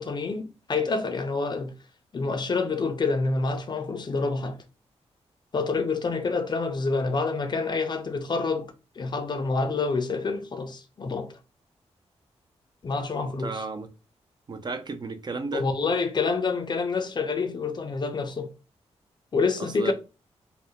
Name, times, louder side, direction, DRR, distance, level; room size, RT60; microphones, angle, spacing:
voice 1, 0.0-1.7 2.1-4.6 5.5-11.4 12.8-13.6 15.5-18.5 19.3-19.9, left 4 dB, 40° left, 0.4 m, -27 dB
voice 2, 13.4-13.9 14.5-15.6 19.8-19.9, right 4 dB, 40° right, 0.4 m, -33 dB
2.2 x 2.1 x 2.7 m
cardioid pair, 75°, 12 cm